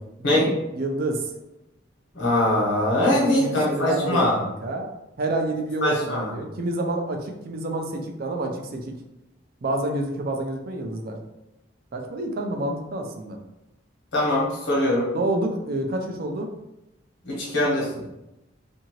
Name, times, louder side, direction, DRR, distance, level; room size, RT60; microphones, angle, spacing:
voice 1, 0.2-1.3 3.0-4.9 5.2-8.9 9.6-11.2 11.9-13.4 15.1-16.5, right 2 dB, 50° right, 3 dB, 0.4 m, -28 dB
voice 2, 2.1-4.4 5.8-6.3 14.1-15.1 17.2-18.0, left 1 dB, 70° left, -4 dB, 1.0 m, -22 dB
2.7 x 2.6 x 2.9 m, 0.93 s
head